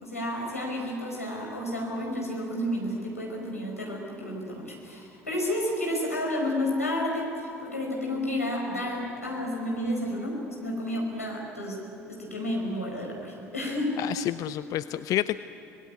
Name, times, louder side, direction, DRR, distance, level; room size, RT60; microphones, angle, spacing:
voice 1, 0.0-11.8 12.1-13.9, left 1 dB, 90° left, -1 dB, 4.7 m, -31 dB
voice 2, 14.0-15.4, left 14 dB, 50° left, 15 dB, 0.5 m, -29 dB
25.0 x 20.5 x 9.6 m, 3.0 s
figure-of-eight pair, 60°, 8 cm